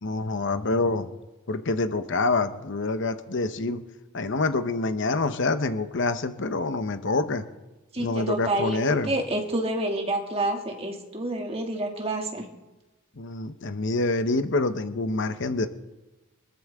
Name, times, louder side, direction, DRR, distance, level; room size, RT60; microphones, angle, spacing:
voice 1, 0.0-1.1 1.5-3.8 4.1-7.4 8.0-9.1 13.2-15.7, left 3 dB, 60° left, 9 dB, 1.0 m, -26 dB
voice 2, 7.9-12.5, right 1 dB, 30° right, 1 dB, 2.3 m, -28 dB
24.0 x 14.0 x 3.6 m, 1.1 s
head